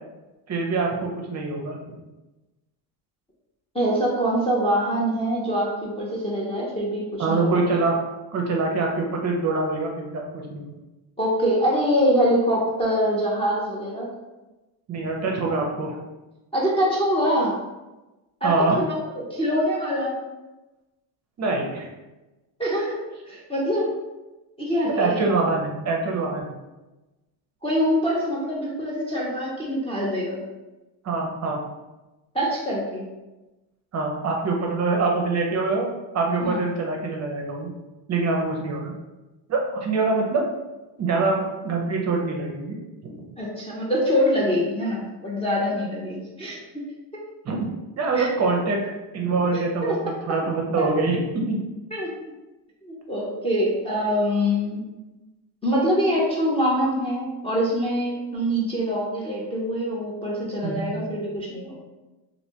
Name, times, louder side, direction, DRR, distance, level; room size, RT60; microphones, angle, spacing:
voice 1, 0.5-1.8 7.2-8.0 8.3-10.7 14.9-16.0 18.4-18.8 21.4-21.9 25.0-26.5 31.0-31.6 33.9-35.9 36.1-37.7 38.1-38.9 39.5-40.4 41.0-43.2 47.4-47.7 48.0-48.8 49.1-50.0 50.2-51.6 60.6-60.9, right 3 dB, 35° right, 0 dB, 0.5 m, -24 dB
voice 2, 3.7-7.6 11.2-14.1 16.5-17.5 18.4-20.1 22.6-23.0 23.3-23.9 24.6-25.2 27.6-30.4 32.3-33.1 36.4-36.6 43.4-46.6 47.1-47.2 48.2-48.3 49.5-50.0 50.8-50.9 51.9-52.1 52.8-54.9 55.6-61.8, equal, 15° left, -4 dB, 0.4 m, -24 dB
3.1 x 2.6 x 2.8 m, 1.1 s
cardioid pair, 130°, 49 cm